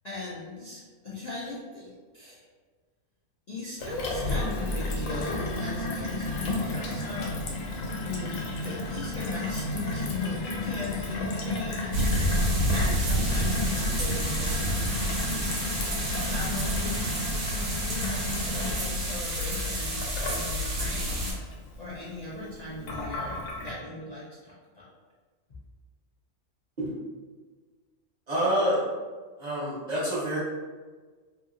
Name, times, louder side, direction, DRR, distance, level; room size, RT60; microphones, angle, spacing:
voice 1, 0.0-2.4 3.5-7.3 8.0-15.4 16.3-17.0 17.5-21.3 21.8-24.9, left 3 dB, 55° left, -8 dB, 0.4 m, -38 dB
Gurgling / Water tap faucet / Sink (filling or washing), 3.8-23.7, left 2 dB, 90° left, 1.0 m, -33 dB
sound 1, 11.9-21.3, right 1 dB, 70° right, 1.1 m, -29 dB
voice 2, 28.3-28.8 29.4-30.4, equal, 40° right, -9 dB, 0.8 m, -27 dB
2.7 x 2.6 x 2.5 m, 1.4 s
omnidirectional pair, 1.4 m